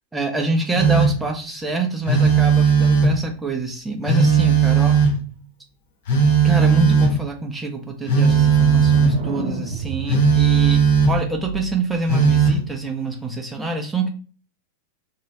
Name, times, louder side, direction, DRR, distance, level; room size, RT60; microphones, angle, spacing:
voice 1, 0.1-5.0 6.4-14.1, right 2 dB, 10° right, 1 dB, 0.6 m, -26 dB
Telephone, 0.8-1.3 2.1-3.3 4.1-5.3 6.1-7.3 8.1-9.2 10.1-11.3 12.1-12.6, right 5 dB, 55° left, 0.8 m, -16 dB
sound 1, 8.3-12.0, right 5 dB, 60° right, 0.9 m, -29 dB
2.9 x 2.9 x 2.7 m, 0.39 s
figure-of-eight pair, 90°, 0 cm